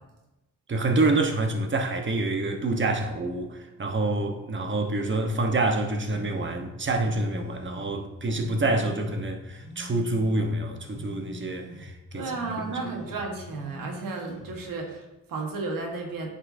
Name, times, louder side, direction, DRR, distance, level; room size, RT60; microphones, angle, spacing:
voice 1, 0.7-12.3 12.6-12.7, right 2 dB, 35° right, 4 dB, 1.1 m, -27 dB
sound 1, 6.1-14.7, left 1 dB, 40° left, 2.4 m, -44 dB
voice 2, 12.1-16.3, right 3 dB, 85° right, 2 dB, 1.4 m, -33 dB
9.4 x 5.6 x 2.7 m, 1.0 s
cardioid pair, 75°, 33 cm